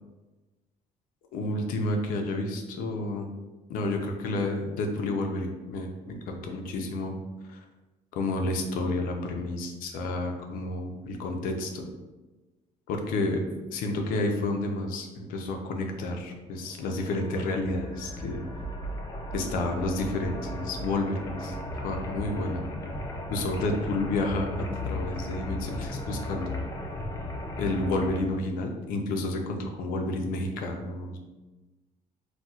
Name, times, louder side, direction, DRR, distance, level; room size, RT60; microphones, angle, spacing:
voice 1, 1.3-3.3 3.7-7.2 7.5-7.6 8.1-11.9 12.9-13.4 13.7-18.4 19.3-22.6 23.3-26.6 27.6-31.2, left 2 dB, 85° left, 3 dB, 0.5 m, -30 dB
sound 1, 16.6-28.2, left 1 dB, 25° left, 0.4 m, -36 dB
4.1 x 2.2 x 2.3 m, 1.2 s
cardioid pair, 140°, 14 cm